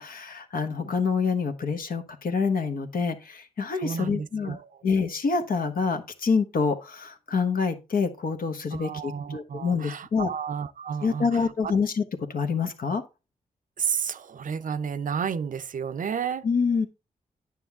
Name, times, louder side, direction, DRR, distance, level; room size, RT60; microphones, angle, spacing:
voice 1, 0.0-4.6 4.8-10.3 11.0-12.0 12.3-13.0 16.4-16.9, left 5 dB, 65° left, 1.2 m, -26 dB
voice 2, 3.7-4.7 8.7-11.4 13.8-16.5, right 7 dB, 60° right, 0.6 m, -31 dB
9.3 x 6.0 x 3.6 m
supercardioid pair, 45°, 16 cm